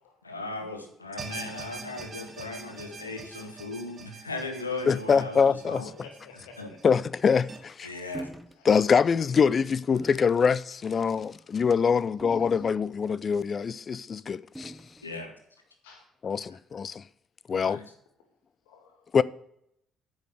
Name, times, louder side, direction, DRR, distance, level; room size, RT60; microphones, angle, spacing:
voice 1, 0.2-5.9 6.6-6.7 7.8-8.3 15.0-15.3 17.5-17.8, left 3 dB, 85° left, 1.2 m, -37 dB
sound 1, 1.2-7.6, right 3 dB, 35° right, 1.9 m, -44 dB
voice 2, 4.9-5.8 6.8-7.9 8.6-14.7 16.2-17.0 17.5-17.8 19.1-19.2, left 6 dB, 40° left, 0.4 m, -24 dB
voice 3, 6.0-6.8 8.5-8.7 9.9-10.1 11.1-11.4 12.4-12.5 15.8-16.1 18.6-19.1, left 4 dB, 70° left, 2.5 m, -52 dB
sound 2, 8.1-8.6 9.0-9.2 10.0-10.4 11.1-11.4 12.2-13.1 14.5-15.1, right 1 dB, ahead, 0.9 m, -43 dB
8.3 x 6.4 x 7.6 m
figure-of-eight pair, 45°, 0 cm